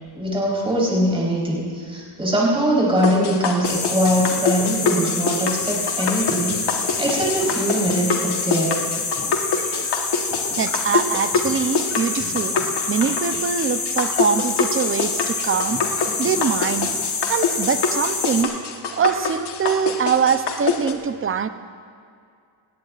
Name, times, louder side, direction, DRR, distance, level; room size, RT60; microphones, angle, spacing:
voice 1, 0.1-8.7, equal, 10° right, -5 dB, 4.2 m, -22 dB
sound 1, 3.0-20.9, left 5 dB, 55° left, 1.4 m, -26 dB
sound 2, 3.6-18.4, left 4 dB, 35° left, 2.1 m, -27 dB
voice 2, 10.5-12.5 12.9-15.8 16.2-16.9 17.3-18.5 18.9-21.5, right 7 dB, 25° right, 11 dB, 0.6 m, -23 dB
19.0 x 17.0 x 2.5 m, 2.3 s
cardioid pair, 100°, 49 cm